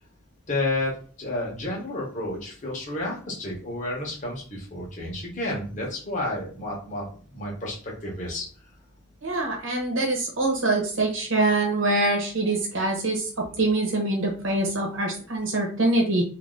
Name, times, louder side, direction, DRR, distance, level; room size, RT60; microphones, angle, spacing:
voice 1, 0.5-8.5, left 1 dB, 35° left, -3 dB, 1.2 m, -31 dB
voice 2, 9.2-16.2, right 2 dB, 70° right, -1 dB, 1.0 m, -24 dB
2.8 x 2.7 x 3.8 m, 0.41 s
head